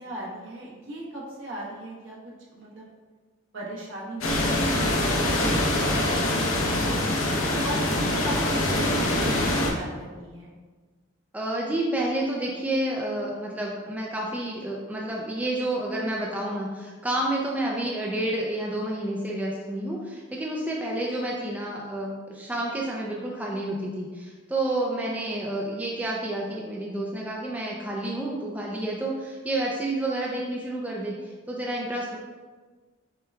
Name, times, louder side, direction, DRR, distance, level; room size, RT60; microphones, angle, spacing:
voice 1, 0.0-2.9 3.5-7.2 7.6-10.6, right 1 dB, 70° right, -5 dB, 1.1 m, -39 dB
sound 1, 4.2-9.7, left 1 dB, 80° left, 0.8 m, -24 dB
voice 2, 11.3-32.2, right 1 dB, 5° right, -3 dB, 0.3 m, -29 dB
5.8 x 2.2 x 3.5 m, 1.4 s
head